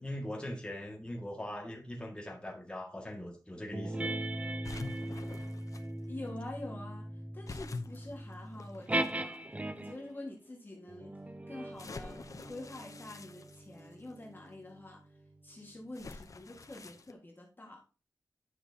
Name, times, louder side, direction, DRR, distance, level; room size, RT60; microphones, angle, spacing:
voice 1, 0.0-4.1, left 1 dB, 15° left, 1.9 m, -41 dB
sound 1, 3.7-10.1 10.9-15.8, right 1 dB, 20° right, 0.6 m, -40 dB
sound 2, 4.6-5.8 7.5-9.1 9.9-10.0 11.8-14.1 15.9-17.1, left 3 dB, 50° left, 0.7 m, -46 dB
voice 2, 6.1-9.4 9.8-11.2 11.5-15.0 15.4-17.8, left 2 dB, 30° left, 1.7 m, -46 dB
9.9 x 5.9 x 2.8 m
wide cardioid pair, 110°, 7 cm